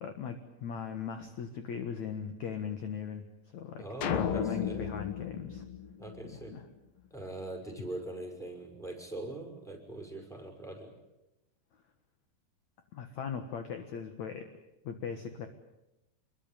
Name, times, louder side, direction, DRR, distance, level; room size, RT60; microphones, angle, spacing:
voice 1, 0.0-3.2 3.5-3.8 4.1-5.6 6.2-6.6 12.9-14.5 14.8-15.5, left 7 dB, 55° left, 7 dB, 2.2 m, -39 dB
voice 2, 3.8-4.9 6.0-6.5 7.1-10.9, right 2 dB, ahead, 4 dB, 5.3 m, -42 dB
sound 1, 4.0-6.5, left 8 dB, 80° left, 1.4 m, -34 dB
27.0 x 22.5 x 9.0 m, 0.93 s
omnidirectional pair, 5.1 m